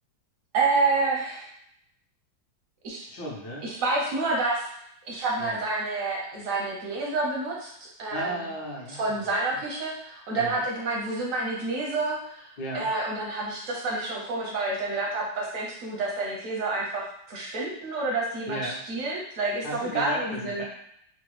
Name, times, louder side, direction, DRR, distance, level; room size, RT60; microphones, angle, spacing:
voice 1, 0.5-1.5 2.8-3.1 3.6-4.7 5.1-7.7 8.0-8.5 8.9-20.6, right 3 dB, 70° right, -2 dB, 0.8 m, -28 dB
voice 2, 3.1-3.7 5.4-5.6 8.1-9.1 9.5-9.6 10.3-10.6 12.6-12.9 18.5-18.8 19.6-20.6, equal, 65° left, -3 dB, 1.5 m, -35 dB
4.8 x 2.1 x 3.0 m, 0.74 s
omnidirectional pair, 2.1 m